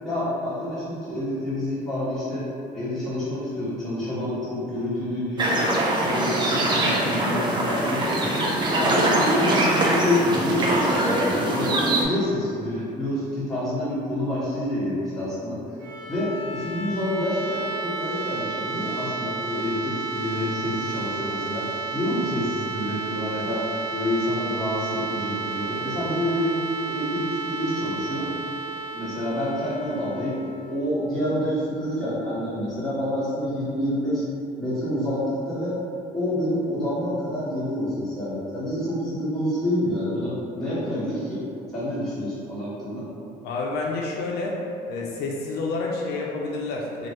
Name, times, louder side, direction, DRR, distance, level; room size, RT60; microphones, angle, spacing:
voice 1, 0.0-2.5 2.7-8.5 8.8-15.6 16.1-28.3 28.9-30.4 30.7-34.2 34.6-35.8 36.1-41.4 41.7-43.0, left 1 dB, 5° left, -13 dB, 1.5 m, -28 dB
sound 1, 5.4-12.0, right 1 dB, 25° right, 0.5 m, -23 dB
sound 2, 15.7-31.5, right 4 dB, 85° right, 0.6 m, -32 dB
voice 2, 43.4-44.6 44.9-47.1, left 3 dB, 75° left, -2 dB, 0.4 m, -29 dB
3.0 x 2.3 x 2.9 m, 2.6 s
cardioid pair, 110°, 17 cm